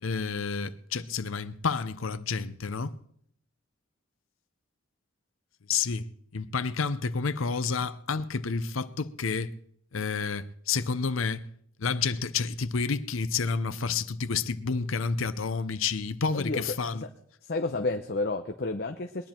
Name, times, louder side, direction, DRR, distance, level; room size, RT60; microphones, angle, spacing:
voice 1, 0.0-2.9 5.7-6.0 6.3-9.5 9.9-11.4 11.8-17.0, left 5 dB, 90° left, 0.7 m, -30 dB
voice 2, 17.4-19.3, left 2 dB, 50° left, 0.8 m, -31 dB
21.5 x 10.5 x 4.4 m
head